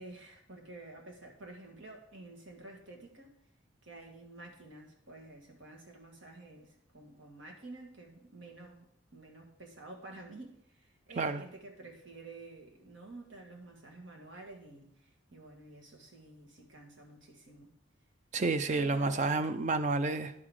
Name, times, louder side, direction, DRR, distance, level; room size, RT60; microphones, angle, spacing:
voice 1, 0.0-3.3 3.8-17.8 18.7-19.5, right 2 dB, 75° right, 2 dB, 1.6 m, -50 dB
voice 2, 18.3-20.3, right 3 dB, 35° right, 11 dB, 0.4 m, -30 dB
10.5 x 3.8 x 4.8 m, 0.69 s
head